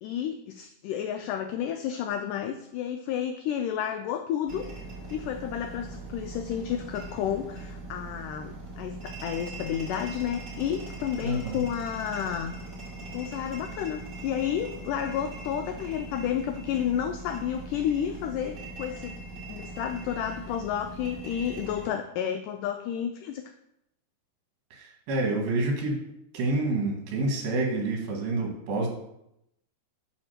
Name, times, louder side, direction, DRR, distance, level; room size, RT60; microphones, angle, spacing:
voice 1, 0.0-4.7 5.1-12.5 13.1-19.2 19.5-23.4, left 9 dB, 90° left, 7 dB, 1.8 m, -31 dB
sound 1, 4.5-21.9, right 2 dB, 35° right, 3.8 m, -41 dB
voice 2, 11.2-11.6 24.7-26.0 26.3-28.9, right 2 dB, 75° right, 1 dB, 3.6 m, -28 dB
8.9 x 4.1 x 6.4 m, 0.80 s
omnidirectional pair, 4.3 m